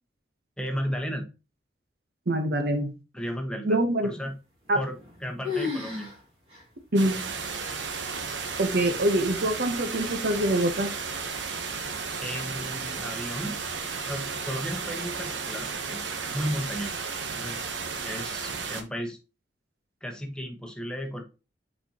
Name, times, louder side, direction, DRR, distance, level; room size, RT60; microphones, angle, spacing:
voice 1, 0.6-1.3 3.1-4.3 4.7-6.1 12.2-13.6 14.1-17.0 17.3-17.6 18.0-19.2 20.0-21.2, equal, 5° left, 1.1 m, -34 dB
voice 2, 2.3-2.9 3.6-4.1 4.7-4.8 6.9-7.3 8.6-10.9, right 1 dB, 60° right, 0.9 m, -25 dB
sound 1, 4.7-5.2 5.4-6.2 6.5-6.6 7.3-7.4 8.1-8.5, left 4 dB, 35° right, 2.4 m, -32 dB
sound 2, 7.0-18.8, right 5 dB, 85° right, 0.9 m, -34 dB
8.3 x 4.3 x 2.9 m
head